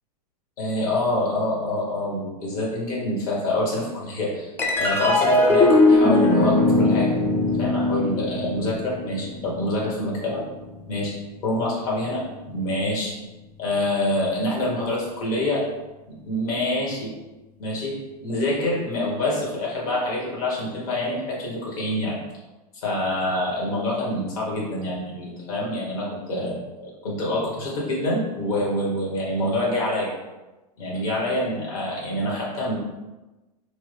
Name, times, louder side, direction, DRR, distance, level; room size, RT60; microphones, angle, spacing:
voice 1, 0.6-4.5 4.8-10.4 10.9-11.1 11.4-13.1 13.6-15.7 16.1-17.1 17.6-17.9 18.2-22.2 22.8-30.1 30.8-32.8, left 1 dB, 65° left, -4 dB, 1.3 m, -26 dB
sound 1, 4.6-11.3, left 2 dB, 10° left, 0.4 m, -21 dB
2.9 x 2.1 x 3.3 m, 1.1 s
hypercardioid pair, 110°, 21 cm